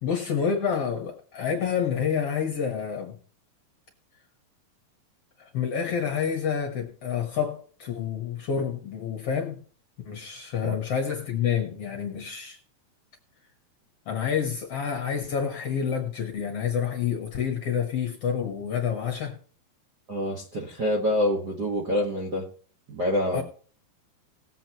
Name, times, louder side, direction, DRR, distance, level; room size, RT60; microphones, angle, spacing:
voice 1, 0.0-3.2 5.4-9.6 10.1-12.6 14.1-19.4 23.3-23.4, left 7 dB, 55° left, 3 dB, 1.9 m, -28 dB
voice 2, 20.1-22.5 22.9-23.4, left 1 dB, 45° right, -2 dB, 1.4 m, -26 dB
19.0 x 7.9 x 3.0 m, 0.43 s
omnidirectional pair, 4.2 m